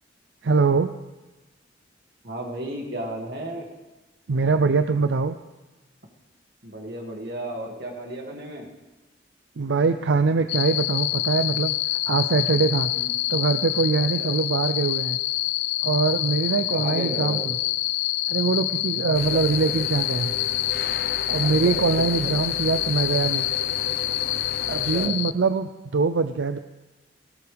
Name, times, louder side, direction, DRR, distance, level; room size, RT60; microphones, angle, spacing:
voice 1, 0.4-0.9 4.3-5.4 9.6-11.8 12.1-12.9 13.3-15.2 15.8-17.6 18.3-20.4 21.3-23.5 24.7-26.6, right 4 dB, 85° right, 9 dB, 0.5 m, -23 dB
voice 2, 2.2-3.7 6.6-8.7 12.9-13.1 14.2-14.3 16.7-17.5 19.2-19.7 21.4-22.4 24.7-25.1, right 1 dB, 60° right, 0 dB, 2.4 m, -34 dB
sound 1, 10.5-25.3, left 16 dB, 75° left, 0.4 m, -27 dB
sound 2, 19.1-25.1, left 3 dB, 55° left, 0.9 m, -36 dB
19.0 x 18.0 x 3.5 m, 1.2 s
head